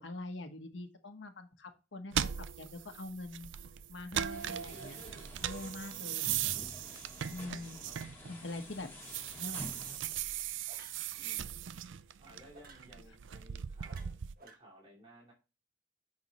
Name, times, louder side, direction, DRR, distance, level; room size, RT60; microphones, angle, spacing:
voice 1, 0.0-3.5 3.9-5.0 5.4-6.3 7.3-7.8 8.4-8.9 9.3-10.0, left 2 dB, 75° left, 5 dB, 1.2 m, -44 dB
sound 1, 2.1-8.5 8.9-14.3, right 10 dB, 90° right, 0.5 m, -39 dB
sound 2, 4.3-10.0, left 1 dB, 15° left, 4.3 m, -49 dB
voice 2, 5.9-6.4 7.4-8.0 11.1-11.5 12.2-15.3, equal, 30° right, -3 dB, 2.9 m, -58 dB
sound 3, 9.6-9.9 10.7-11.1 12.5-12.9 13.8-14.6, right 4 dB, 50° right, 1.3 m, -56 dB
9.5 x 6.3 x 3.1 m, 0.30 s
head